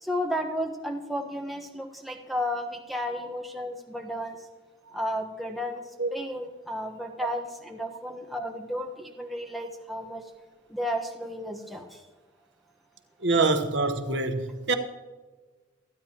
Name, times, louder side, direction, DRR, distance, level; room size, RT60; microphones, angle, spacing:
voice 1, 0.0-4.4 4.9-5.8 6.1-10.2 10.7-12.0, equal, ahead, 1.2 m, -33 dB
voice 2, 13.2-14.7, right 3 dB, 75° right, 1.1 m, -25 dB
26.0 x 9.7 x 2.9 m
head